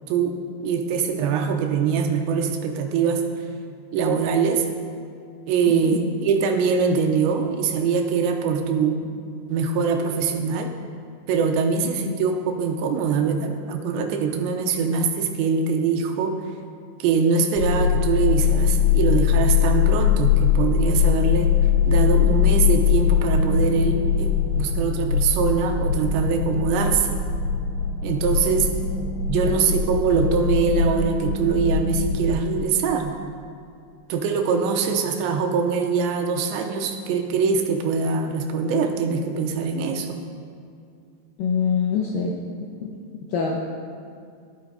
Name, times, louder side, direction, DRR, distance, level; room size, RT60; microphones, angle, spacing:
voice 1, 0.6-3.2 3.9-4.7 5.5-9.1 9.5-10.7 11.3-16.4 17.0-21.5 21.8-27.2 28.0-28.7 29.3-33.2 34.1-40.2, right 5 dB, 90° right, 4 dB, 3.2 m, -23 dB
voice 2, 5.7-6.1 11.8-12.1 29.4-29.6 41.4-42.4 42.8-42.9 43.3-43.6, left 6 dB, 80° left, -1 dB, 2.0 m, -25 dB
sound 1, 17.6-32.3, left 8 dB, 60° left, 2.6 m, -21 dB
14.0 x 12.5 x 4.0 m, 2.3 s
omnidirectional pair, 5.1 m